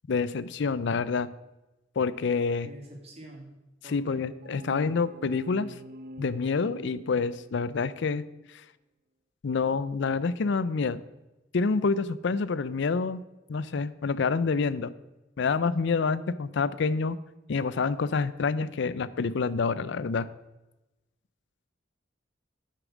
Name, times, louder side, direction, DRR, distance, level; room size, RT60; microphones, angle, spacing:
voice 1, 0.1-1.3 2.0-2.7 3.9-5.7 6.2-8.2 9.4-11.0 11.5-13.2 13.5-14.9 15.4-17.2 17.5-20.3, left 4 dB, 65° left, 17 dB, 0.5 m, -27 dB
voice 2, 2.6-3.5 3.8-4.2, right 1 dB, 35° right, 0 dB, 2.6 m, -46 dB
sound 1, 4.0-7.8, equal, 55° right, 0.7 m, -45 dB
11.0 x 6.7 x 6.2 m, 1.0 s
head